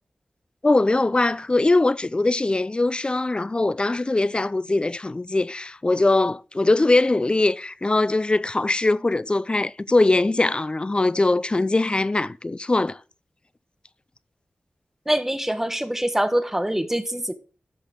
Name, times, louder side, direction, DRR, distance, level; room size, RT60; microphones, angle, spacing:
voice 1, 0.6-13.0, left 2 dB, 30° left, 0.5 m, -21 dB
voice 2, 15.1-17.3, right 1 dB, 10° right, 1.2 m, -24 dB
10.5 x 6.5 x 3.7 m
wide cardioid pair, 70°, 3 cm